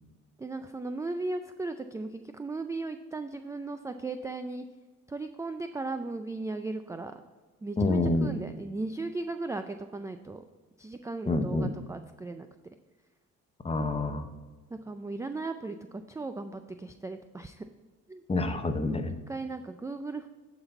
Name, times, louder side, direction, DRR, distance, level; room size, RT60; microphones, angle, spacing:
voice 1, 0.4-4.6 5.1-7.1 7.6-10.4 10.8-12.5 14.7-17.7 18.1-18.2 19.3-20.3, right 3 dB, 10° right, 8 dB, 0.3 m, -36 dB
voice 2, 7.8-8.3 11.3-11.7 13.6-14.3 18.3-19.1, left 2 dB, 20° left, 7 dB, 0.7 m, -27 dB
11.0 x 4.1 x 4.3 m, 1.3 s
cardioid pair, 90°, 30 cm